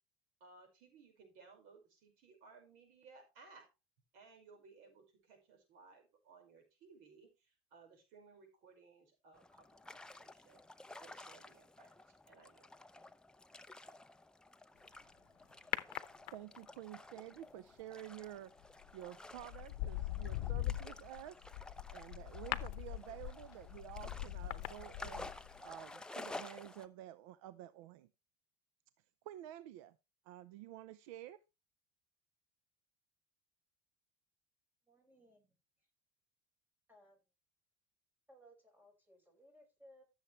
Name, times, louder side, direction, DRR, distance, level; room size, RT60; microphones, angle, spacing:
voice 1, 0.4-3.7 4.1-10.6 11.0-12.7, right 4 dB, 60° right, 5.2 m, -61 dB
sound 1, 9.3-26.9, left 2 dB, 5° left, 0.6 m, -53 dB
sound 2, 15.7-16.8 18.6-18.9 19.4-25.6 25.9-26.0, left 16 dB, 75° left, 0.8 m, -41 dB
voice 2, 16.3-18.5 18.9-21.4 21.9-25.3 25.6-28.1 29.2-30.0 30.2-31.4, right 13 dB, 85° right, 0.7 m, -50 dB
voice 3, 34.9-35.5 36.9-37.2 38.3-40.0, equal, 10° right, 5.5 m, -63 dB
14.5 x 7.3 x 3.2 m
supercardioid pair, 135°, 16 cm